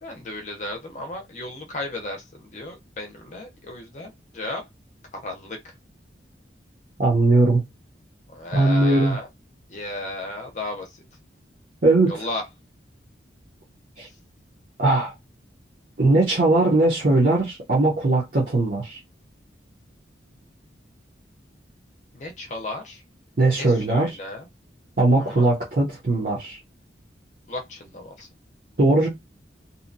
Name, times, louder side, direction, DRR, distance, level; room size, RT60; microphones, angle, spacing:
voice 1, 0.0-4.6 5.1-5.6 8.3-9.3 9.7-10.9 12.1-12.4 22.1-23.0 23.6-24.5 25.2-25.5 27.5-28.3, left 2 dB, 40° left, 0.5 m, -34 dB
voice 2, 7.0-7.6 8.6-9.2 11.8-12.3 14.0-14.1 14.8-15.1 16.0-19.0 23.4-24.2 25.0-26.6 28.8-29.1, right 2 dB, 50° right, 0.7 m, -19 dB
2.7 x 2.2 x 2.5 m
head